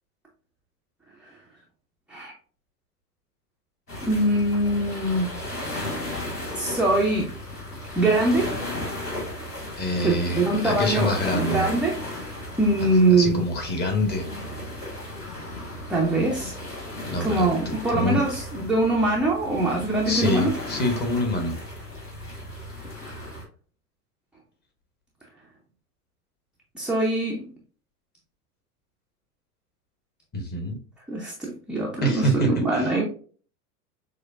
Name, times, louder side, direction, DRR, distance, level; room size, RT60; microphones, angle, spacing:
sound 1, 3.9-23.4, left 1 dB, 85° left, 1.7 m, -35 dB
voice 1, 4.0-5.3 6.5-7.3 8.0-8.6 10.0-11.9 12.6-13.4 15.9-16.5 17.2-20.5 26.7-27.5 31.1-33.0, right 2 dB, ahead, -4 dB, 0.5 m, -23 dB
voice 2, 9.8-11.7 12.8-14.3 17.1-18.2 20.0-21.5 30.3-30.8 32.0-32.9, left 1 dB, 20° left, 4 dB, 1.0 m, -26 dB
6.5 x 2.2 x 2.4 m, 0.41 s
figure-of-eight pair, 90°, 46 cm